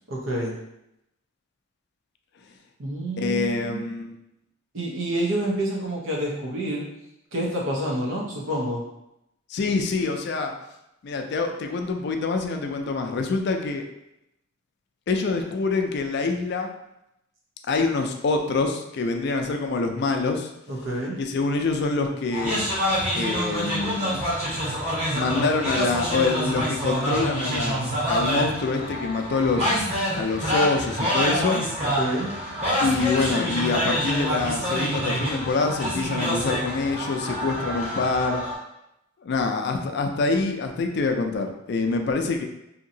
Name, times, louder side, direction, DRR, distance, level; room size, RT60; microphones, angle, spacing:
voice 1, 0.1-0.6 2.8-3.9 4.7-6.8 7.3-8.8 20.7-21.2 31.8-32.3, right 1 dB, 85° right, -3 dB, 0.8 m, -28 dB
voice 2, 3.2-4.2 9.5-10.5 11.0-13.8 15.1-16.7 17.7-20.5 21.2-22.6 23.2-24.2 25.1-29.8 30.2-31.6 32.8-38.5 39.2-42.4, left 3 dB, 60° left, 5 dB, 0.4 m, -25 dB
sound 1, 22.3-38.5, equal, 35° right, 0.9 m, -27 dB
2.8 x 2.7 x 2.7 m, 0.85 s
head